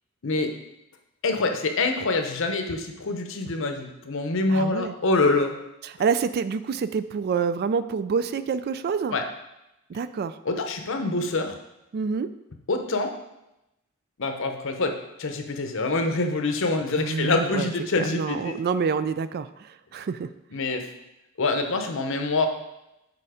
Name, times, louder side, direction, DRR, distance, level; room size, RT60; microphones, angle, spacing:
voice 1, 1.2-5.5 9.1-9.2 10.4-11.6 12.7-13.1 14.2-14.9 15.2-18.5 20.5-20.9 21.4-22.5, left 3 dB, 65° left, 5 dB, 0.8 m, -25 dB
voice 2, 4.5-4.9 5.8-9.2 9.9-10.4 11.9-12.3 17.0-17.7 18.0-20.3, right 5 dB, 50° right, 13 dB, 0.3 m, -27 dB
6.8 x 4.3 x 4.9 m, 0.91 s
head